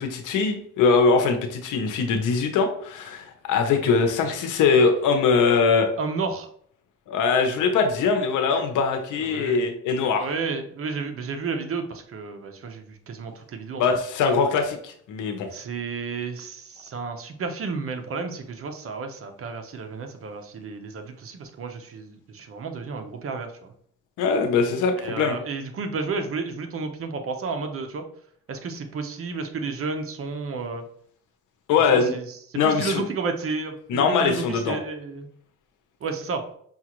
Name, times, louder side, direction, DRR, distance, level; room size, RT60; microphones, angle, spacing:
voice 1, 0.0-5.9 7.1-10.3 13.8-15.5 24.2-25.4 31.7-32.1 32.5-33.0 33.9-34.8, left 5 dB, 85° left, 5 dB, 0.8 m, -22 dB
voice 2, 6.0-6.5 9.2-9.6 10.2-13.8 15.5-23.7 25.0-28.0 28.5-30.8 31.9-35.3 36.0-36.4, right 4 dB, 50° right, 6 dB, 0.7 m, -32 dB
5.5 x 2.4 x 3.0 m, 0.63 s
cardioid pair, 90°, 30 cm